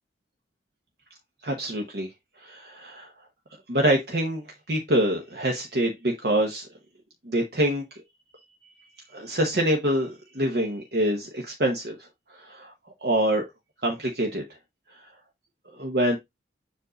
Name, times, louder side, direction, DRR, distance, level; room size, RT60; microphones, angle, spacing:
voice 1, 1.4-2.1 2.4-3.1 3.7-6.7 7.2-8.0 9.1-12.7 13.0-13.4 13.8-14.4 14.9-15.1 15.7-16.2, right 1 dB, 55° right, 1.1 m, -26 dB
7.3 x 2.6 x 5.1 m
head